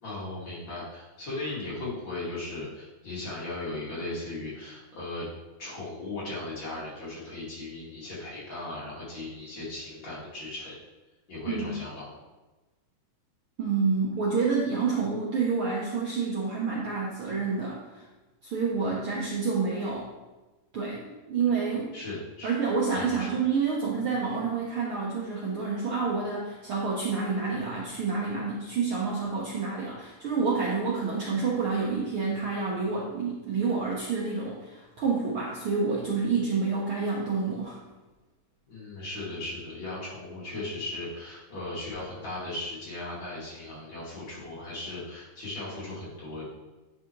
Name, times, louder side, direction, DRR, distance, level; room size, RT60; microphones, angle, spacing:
voice 1, 0.0-5.3 5.6-10.8 11.3-12.1 18.8-19.0 21.9-22.5 22.9-23.3 38.7-46.5, left 2 dB, 40° left, -8 dB, 2.9 m, -37 dB
voice 2, 11.4-11.8 13.6-18.0 18.4-20.1 20.7-21.9 22.4-37.8, right 4 dB, 60° right, -5 dB, 1.5 m, -28 dB
9.7 x 6.0 x 3.1 m, 1.1 s
omnidirectional pair, 3.4 m